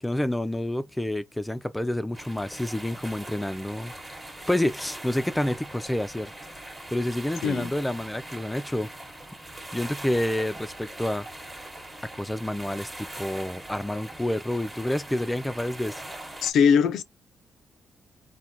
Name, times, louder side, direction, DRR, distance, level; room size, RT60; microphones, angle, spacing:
voice 1, 0.0-3.9 4.5-6.3 6.9-8.9 9.7-11.3 12.1-16.1, left 1 dB, 10° left, 0.3 m, -28 dB
sound 1, 2.1-16.5, right 1 dB, 15° right, 0.9 m, -41 dB
voice 2, 16.4-17.0, left 6 dB, 80° left, 0.4 m, -21 dB
3.2 x 2.2 x 2.7 m
cardioid pair, 80°, 0 cm